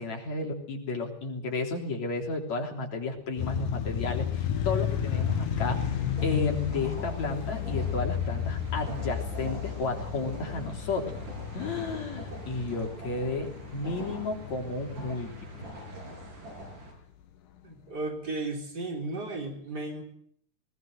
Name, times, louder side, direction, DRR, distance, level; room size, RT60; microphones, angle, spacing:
voice 1, 0.0-5.8 6.2-11.2 11.5-15.3, left 3 dB, 60° left, 2 dB, 4.8 m, -32 dB
sound 1, 3.4-16.5, left 9 dB, 80° left, 3.0 m, -33 dB
sound 2, 4.9-16.9, right 2 dB, 90° right, 7.5 m, -44 dB
voice 2, 17.6-20.0, right 2 dB, 30° right, 2 dB, 4.3 m, -34 dB
20.0 x 19.5 x 7.9 m, 0.68 s
omnidirectional pair, 3.6 m